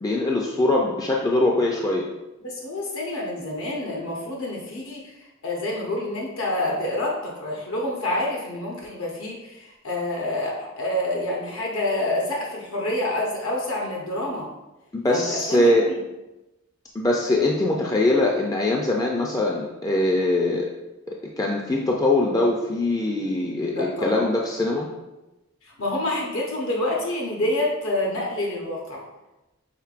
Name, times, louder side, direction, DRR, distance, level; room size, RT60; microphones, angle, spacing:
voice 1, 0.0-2.1 14.9-15.9 16.9-20.7 21.1-24.9, left 2 dB, 15° left, -1 dB, 0.3 m, -22 dB
voice 2, 2.4-5.1 5.4-14.5 15.0-16.0 23.7-24.2 25.6-29.0, left 1 dB, 80° left, -2 dB, 0.9 m, -27 dB
5.7 x 3.6 x 2.4 m, 1.0 s
head